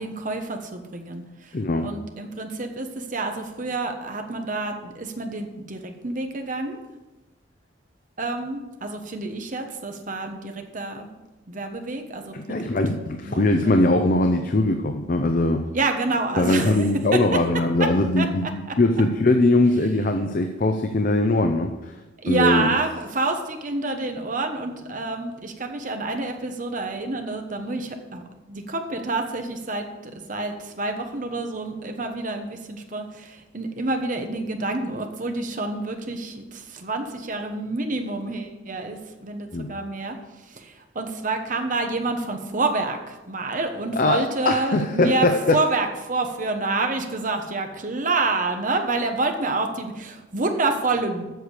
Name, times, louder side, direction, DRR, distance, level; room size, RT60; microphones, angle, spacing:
voice 1, 0.0-6.8 8.2-11.1 11.5-12.7 13.2-14.0 15.7-17.4 17.8-17.9 18.2-18.3 18.7-18.8 22.2-28.2 28.5-40.2 40.5-51.3, right 3 dB, 45° right, 5 dB, 1.1 m, -28 dB
voice 2, 1.5-1.9 12.5-15.6 16.4-21.9 22.3-22.7 39.5-39.7 43.9-45.6, left 2 dB, 45° left, 6 dB, 0.6 m, -21 dB
7.8 x 6.8 x 8.2 m, 1.1 s
head